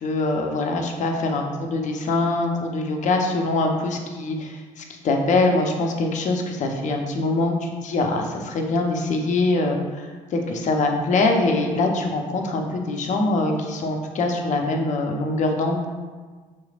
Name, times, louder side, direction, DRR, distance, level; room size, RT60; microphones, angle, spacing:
voice 1, 0.0-15.9, left 2 dB, 50° left, 2 dB, 0.8 m, -23 dB
6.0 x 3.2 x 2.4 m, 1.4 s
hypercardioid pair, 65°, 16 cm